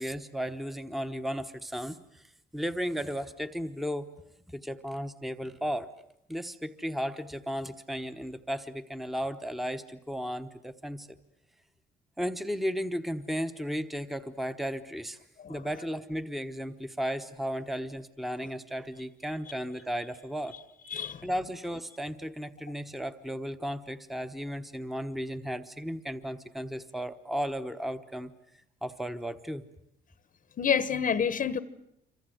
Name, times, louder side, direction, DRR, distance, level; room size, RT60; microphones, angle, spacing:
voice 1, 0.0-2.2 2.5-4.1 4.5-5.9 6.3-11.2 12.2-15.2 15.5-20.6 21.2-28.3 28.8-29.6, equal, ahead, 1.1 m, -34 dB
voice 2, 20.9-21.3 30.6-31.6, left 7 dB, 45° left, 1.1 m, -28 dB
27.0 x 25.0 x 7.9 m
cardioid pair, 105°, 19 cm